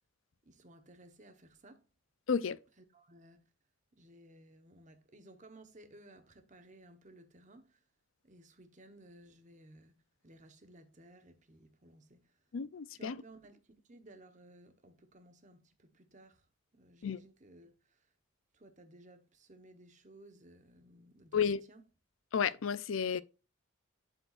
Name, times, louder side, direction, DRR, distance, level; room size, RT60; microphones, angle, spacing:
voice 1, 0.4-1.9 2.8-3.4 4.0-7.8 8.2-9.9 10.2-12.3 12.9-16.5 16.7-18.1 18.5-21.8, right 1 dB, 35° right, 1.1 m, -58 dB
voice 2, 2.3-2.6 12.5-13.1 17.0-17.2 21.3-21.6 22.3-23.2, left 6 dB, 70° left, 0.4 m, -32 dB
12.0 x 4.5 x 2.5 m
head